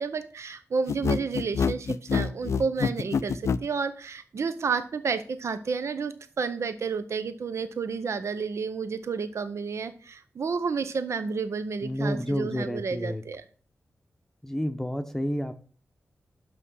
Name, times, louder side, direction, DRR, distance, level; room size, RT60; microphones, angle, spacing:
voice 1, 0.0-13.4, right 5 dB, 65° right, 11 dB, 0.7 m, -31 dB
sound 1, 0.9-3.7, left 6 dB, 70° left, 0.4 m, -26 dB
voice 2, 11.8-13.2 14.4-15.5, equal, 5° left, 7 dB, 0.8 m, -30 dB
6.1 x 5.7 x 6.2 m, 0.41 s
cardioid pair, 70°, 5 cm